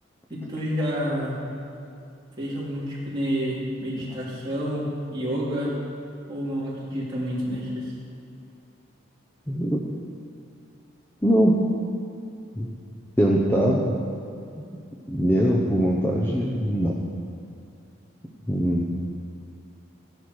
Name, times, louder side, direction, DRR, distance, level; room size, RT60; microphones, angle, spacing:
voice 1, 0.3-1.4 2.4-5.7 6.3-7.9, equal, 20° right, -8 dB, 3.5 m, -29 dB
voice 2, 9.5-9.8 11.2-11.6 12.6-12.7 13.2-13.9 14.6-14.7 15.1-16.9 18.5-18.9, equal, 10° left, -3 dB, 0.9 m, -21 dB
15.5 x 11.5 x 4.8 m, 2.5 s
head